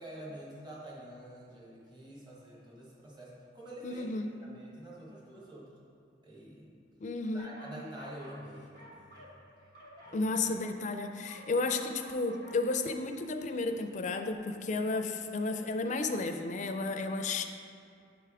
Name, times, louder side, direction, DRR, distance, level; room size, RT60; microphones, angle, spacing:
voice 1, 0.0-4.1 4.4-5.7 6.2-6.7 7.3-9.3 10.0-10.3, right 1 dB, 25° right, -6 dB, 1.2 m, -47 dB
voice 2, 3.8-4.3 7.0-7.5 10.1-17.4, left 3 dB, 40° left, 6 dB, 0.4 m, -33 dB
sound 1, 7.4-8.5 8.7-12.7, equal, 55° right, 1.2 m, -52 dB
8.9 x 3.4 x 4.8 m, 2.5 s
head